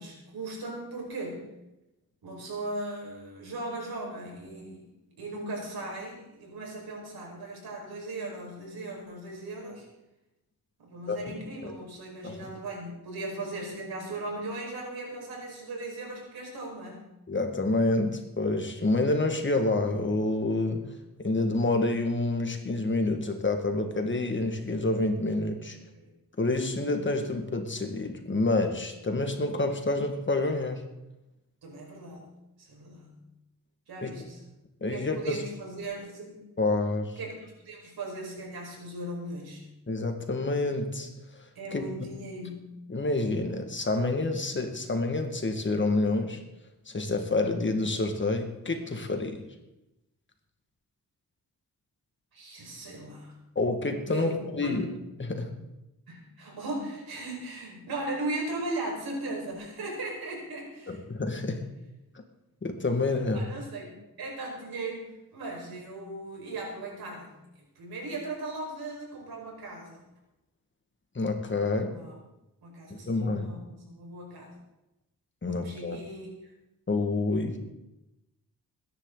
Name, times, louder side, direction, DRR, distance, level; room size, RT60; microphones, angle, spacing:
voice 1, 0.0-1.4 2.2-4.8 5.2-9.9 10.8-17.0 25.9-26.1 31.6-32.2 32.6-33.2 33.9-34.4 34.9-36.4 37.2-39.6 41.6-42.7 52.3-53.4 54.1-54.8 56.1-61.0 63.3-63.9 64.2-65.0 65.3-67.3 67.8-70.0 71.9-72.2 72.6-74.5 75.4-76.3, right 2 dB, 85° right, -1 dB, 5.3 m, -38 dB
voice 2, 17.3-20.8 21.2-25.8 26.4-30.8 34.0-34.1 34.8-35.4 36.6-37.2 39.9-41.1 41.7-41.9 42.9-46.4 46.9-49.4 53.6-54.9 55.2-55.5 60.9-61.6 62.6-63.5 71.2-72.0 72.9-73.5 75.4-76.0 76.9-77.6, left 2 dB, 30° left, 5 dB, 1.9 m, -28 dB
21.0 x 10.5 x 4.0 m, 0.94 s
wide cardioid pair, 100°, 36 cm